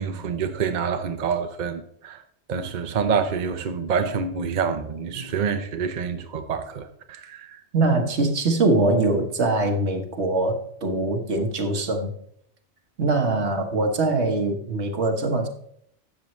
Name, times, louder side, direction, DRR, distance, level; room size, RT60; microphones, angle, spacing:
voice 1, 0.0-2.2 2.5-7.6, right 6 dB, 45° right, 0.8 m, -27 dB
voice 2, 7.7-12.1 13.0-15.5, right 2 dB, 75° right, 1.5 m, -23 dB
12.0 x 7.5 x 3.1 m
omnidirectional pair, 1.2 m